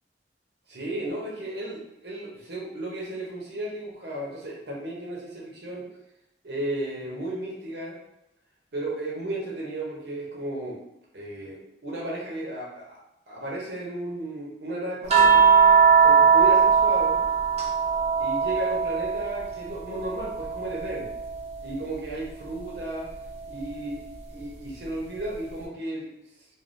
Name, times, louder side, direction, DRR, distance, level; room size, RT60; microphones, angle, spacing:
voice 1, 0.7-5.9 6.4-7.9 8.7-10.8 11.1-13.0 13.3-15.4 16.0-17.2 18.2-21.1 21.6-23.1 23.5-26.1, right 1 dB, 65° right, -4 dB, 0.8 m, -34 dB
sound 1, 15.1-19.6 19.9-21.6 23.1-23.3, right 6 dB, 35° right, 0.6 m, -20 dB
3.4 x 2.2 x 2.6 m, 0.86 s
head